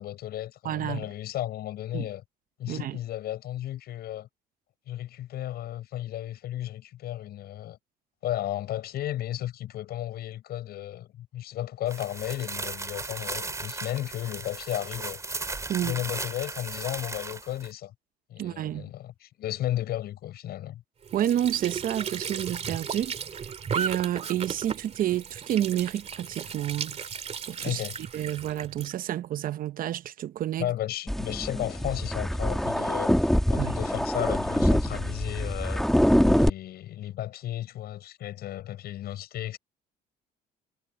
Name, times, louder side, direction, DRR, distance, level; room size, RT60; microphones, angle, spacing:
voice 1, 0.0-2.2 2.6-4.3 4.9-7.8 8.2-15.2 15.8-17.9 18.3-20.8 27.6-28.0 30.6-35.8 36.3-39.6, left 13 dB, 70° left, 7.4 m, -34 dB
voice 2, 0.6-1.1 1.9-2.1 2.7-3.0 15.7-16.0 18.4-18.9 21.1-23.1 23.7-27.0 27.5-27.8 28.1-30.7 33.6-33.8, right 11 dB, 55° right, 0.8 m, -29 dB
sound 1, 11.9-17.7, right 3 dB, 20° right, 3.3 m, -36 dB
Squeak / Sink (filling or washing) / Trickle dribble, 21.0-28.9, right 6 dB, 40° right, 2.2 m, -35 dB
sound 2, 31.1-36.5, equal, ahead, 1.9 m, -24 dB
cardioid pair, 110°, 17 cm